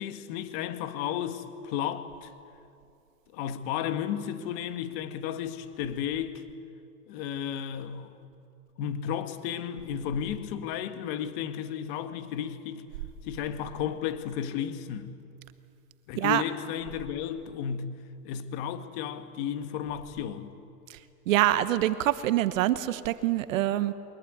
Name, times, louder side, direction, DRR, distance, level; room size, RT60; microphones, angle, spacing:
voice 1, 0.0-2.3 3.3-6.4 7.1-8.2 8.8-12.8 13.2-15.2 16.1-18.0 18.2-20.6, left 9 dB, 40° left, 1.9 m, -33 dB
voice 2, 21.3-23.9, right 14 dB, 55° right, 1.2 m, -25 dB
22.5 x 21.0 x 9.5 m
hypercardioid pair, 140°, 47 cm